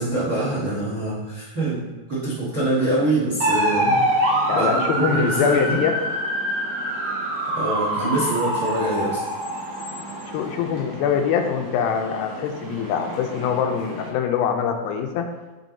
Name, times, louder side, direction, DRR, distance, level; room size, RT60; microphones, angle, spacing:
voice 1, 0.0-4.0 4.5-5.8 7.5-9.2, right 1 dB, 75° right, -8 dB, 0.8 m, -24 dB
sound 1, 3.4-14.1, right 1 dB, 55° right, 2.4 m, -26 dB
voice 2, 4.5-5.9 10.3-15.3, left 7 dB, 80° left, 5 dB, 2.3 m, -23 dB
8.2 x 3.4 x 3.8 m, 1.2 s
omnidirectional pair, 4.4 m